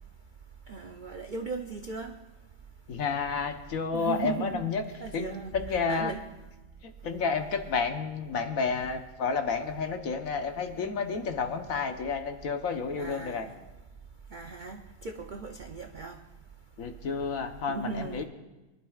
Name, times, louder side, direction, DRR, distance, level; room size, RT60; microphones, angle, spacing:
voice 1, 0.7-2.1 3.9-4.6 5.0-6.2 12.9-13.6 14.3-16.2 17.7-18.2, right 5 dB, 60° right, 0.5 m, -37 dB
voice 2, 2.9-4.8 5.1-6.1 6.8-13.5 16.8-18.2, left 5 dB, 65° left, 1.4 m, -31 dB
24.0 x 11.5 x 2.4 m
omnidirectional pair, 1.6 m